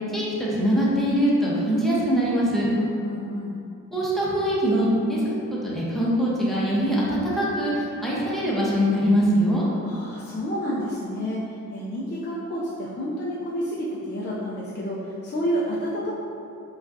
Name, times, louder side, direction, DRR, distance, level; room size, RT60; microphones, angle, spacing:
voice 1, 0.1-2.7 3.9-5.2 5.6-9.6, equal, ahead, -7 dB, 0.9 m, -22 dB
voice 2, 2.7-3.6 9.8-16.1, equal, 35° left, -7 dB, 0.5 m, -30 dB
5.0 x 2.4 x 2.7 m, 2.6 s
cardioid pair, 100°, 32 cm